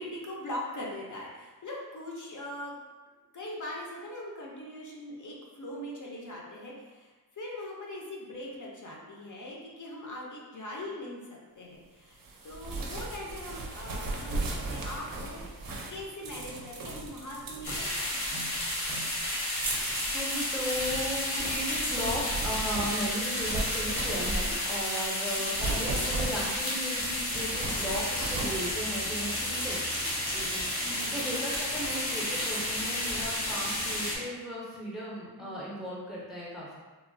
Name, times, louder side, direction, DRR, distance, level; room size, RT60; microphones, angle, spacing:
voice 1, 0.0-2.8 3.3-15.4 15.9-18.1 25.3-25.7 30.8-31.3 35.4-35.6, left 1 dB, 50° left, -3 dB, 0.5 m, -41 dB
sound 1, 12.2-24.8 25.3-29.7, right 3 dB, 60° right, 0.5 m, -38 dB
sound 2, 17.6-34.2, left 1 dB, 70° left, 0.9 m, -32 dB
voice 2, 20.1-29.8 30.3-30.7 31.1-36.7, equal, ahead, -6 dB, 0.4 m, -36 dB
sound 3, 27.3-34.3, equal, 90° left, 1.1 m, -46 dB
3.0 x 2.0 x 2.5 m, 1.3 s
wide cardioid pair, 165°, 39 cm